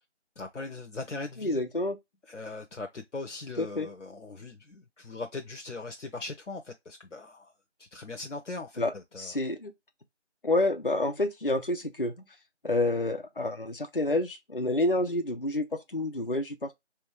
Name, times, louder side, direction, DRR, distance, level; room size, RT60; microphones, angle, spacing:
voice 1, 0.4-1.6 2.3-7.5 7.8-9.4, left 3 dB, 80° left, 0.7 m, -40 dB
voice 2, 1.4-2.0 3.6-3.9 8.8-9.7 10.4-12.3 12.6-16.7, left 2 dB, 50° left, 0.5 m, -29 dB
3.5 x 3.1 x 3.0 m
figure-of-eight pair, 175°, 35 cm